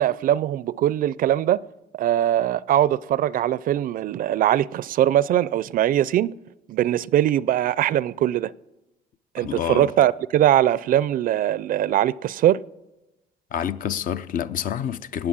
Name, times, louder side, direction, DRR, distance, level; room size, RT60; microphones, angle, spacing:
voice 1, 0.0-1.6 1.9-6.3 6.7-8.5 9.3-12.6, right 12 dB, 55° right, 0.4 m, -21 dB
voice 2, 9.4-9.9 13.5-15.3, left 9 dB, 55° left, 0.6 m, -27 dB
19.0 x 8.0 x 7.4 m
cardioid pair, 110°, 17 cm